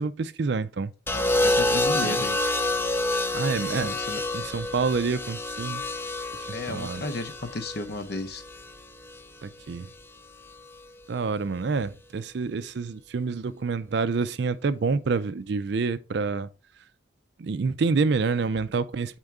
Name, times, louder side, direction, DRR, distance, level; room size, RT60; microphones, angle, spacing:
voice 1, 0.0-0.9 2.0-2.2 3.3-4.0 4.3-5.8 6.3-7.0 9.4-9.9 11.1-16.5 17.4-19.2, right 4 dB, 55° right, 0.4 m, -27 dB
voice 2, 1.1-2.4 3.6-3.7 3.9-4.2 6.5-8.4, left 2 dB, 50° left, 0.8 m, -34 dB
sound 1, 1.1-9.2 10.4-10.8, left 2 dB, 10° left, 0.4 m, -28 dB
7.9 x 4.4 x 3.6 m
head